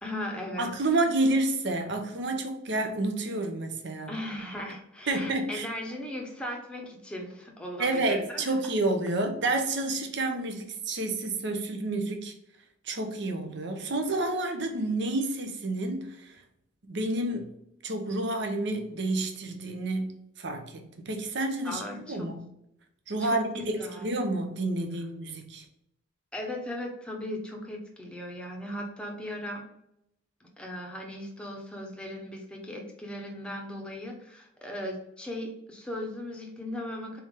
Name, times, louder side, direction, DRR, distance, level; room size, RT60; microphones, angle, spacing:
voice 1, 0.0-0.7 4.1-8.6 21.6-22.3 23.2-23.4 23.7-24.1 26.3-29.6 30.6-37.2, left 1 dB, 5° left, 0.8 m, -37 dB
voice 2, 0.6-4.1 5.1-5.7 7.8-12.3 12.8-16.4 16.9-17.5 17.8-22.5 23.1-25.6, right 2 dB, 60° right, 0.8 m, -29 dB
4.2 x 3.5 x 3.6 m
head